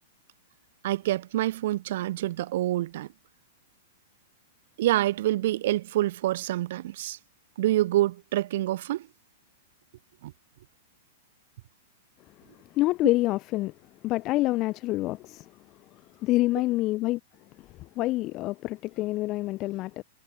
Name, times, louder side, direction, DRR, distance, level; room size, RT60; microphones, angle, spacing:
voice 1, 0.8-3.1 4.8-7.2 7.6-9.1 10.2-10.3, right 15 dB, 50° right, 0.7 m, -26 dB
voice 2, 12.7-13.7 14.0-15.5 16.2-17.2 18.0-20.0, left 18 dB, 35° left, 0.7 m, -26 dB
figure-of-eight pair, 100°, 0 cm